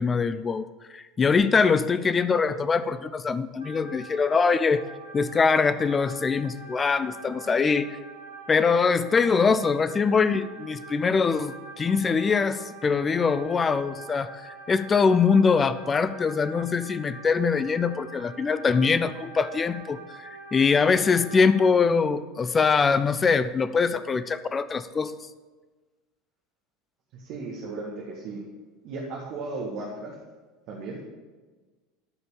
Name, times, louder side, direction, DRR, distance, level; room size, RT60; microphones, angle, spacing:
voice 1, 0.0-4.8 5.1-8.0 8.5-25.1, left 5 dB, 25° left, 14 dB, 0.5 m, -23 dB
sound 1, 3.6-21.6, right 3 dB, 90° left, 2.0 m, -45 dB
voice 2, 27.1-28.4 28.8-30.1 30.7-31.0, right 3 dB, 50° right, -4 dB, 1.7 m, -35 dB
13.0 x 5.2 x 7.1 m, 1.3 s
figure-of-eight pair, 70°, 0 cm